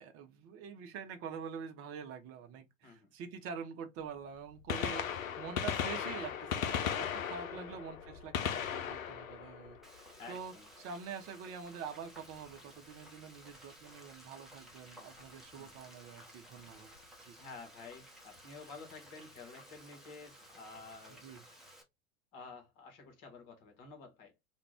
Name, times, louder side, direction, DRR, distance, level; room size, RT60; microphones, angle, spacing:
voice 1, 0.0-16.9 17.2-17.4 21.1-21.4, right 6 dB, 35° right, 0.8 m, -46 dB
Gunshot gunfire, 4.0-4.1 4.5-10.4 12.3-12.5 13.5-13.6 15.2-15.3 16.7-16.8 17.0-17.1, left 8 dB, 75° left, 0.8 m, -37 dB
Frying (food), 9.8-21.8, equal, ahead, 1.0 m, -56 dB
voice 2, 10.2-10.6 15.5-15.7 17.4-21.2 22.3-24.3, left 4 dB, 45° left, 1.8 m, -51 dB
3.5 x 2.5 x 3.4 m
figure-of-eight pair, 85°, 42 cm